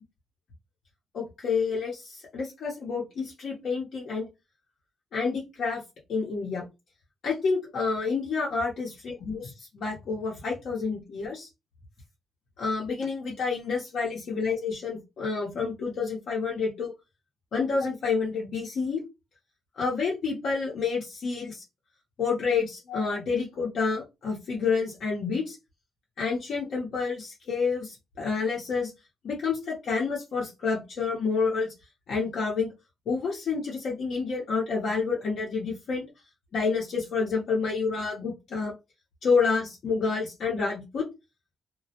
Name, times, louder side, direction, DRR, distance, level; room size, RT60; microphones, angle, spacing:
voice 1, 1.1-4.3 5.1-5.8 6.1-6.6 7.2-11.5 12.6-16.9 17.5-19.0 19.8-21.6 22.2-25.6 26.2-28.9 29.2-31.7 32.1-32.7 33.1-36.0 36.5-38.7 39.2-41.1, left 4 dB, 60° left, -3 dB, 0.7 m, -29 dB
2.2 x 2.0 x 2.8 m, 0.24 s
cardioid pair, 110°, 0 cm